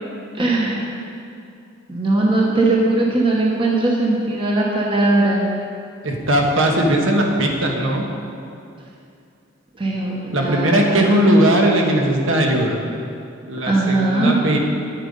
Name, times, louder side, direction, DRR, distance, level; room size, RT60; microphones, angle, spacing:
voice 1, 0.4-0.8 1.9-5.4 9.8-11.2 13.7-14.4, right 2 dB, 25° right, -3 dB, 1.1 m, -19 dB
voice 2, 6.0-8.1 10.3-12.8 13.5-14.6, right 1 dB, 75° right, 1 dB, 1.4 m, -18 dB
9.7 x 8.9 x 5.4 m, 2.5 s
head